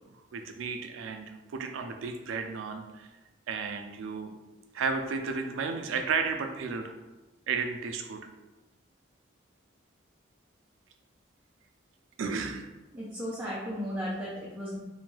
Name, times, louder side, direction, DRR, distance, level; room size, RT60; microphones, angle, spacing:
voice 1, 0.3-3.1 3.5-4.3 4.7-6.9 7.5-8.3 12.2-12.7, right 5 dB, 80° right, 5 dB, 0.3 m, -33 dB
voice 2, 12.9-14.8, equal, 10° right, -7 dB, 0.4 m, -35 dB
2.6 x 2.2 x 3.0 m, 1.1 s
head